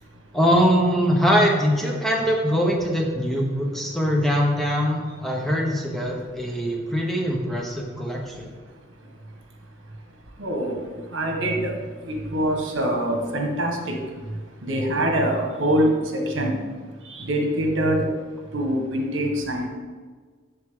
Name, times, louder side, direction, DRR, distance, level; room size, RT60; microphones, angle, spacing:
voice 1, 0.3-8.5, equal, ahead, -1 dB, 1.0 m, -22 dB
voice 2, 10.4-16.7 17.0-18.1 18.5-19.7, right 1 dB, 75° right, 1 dB, 1.5 m, -25 dB
7.6 x 7.3 x 3.7 m, 1.5 s
head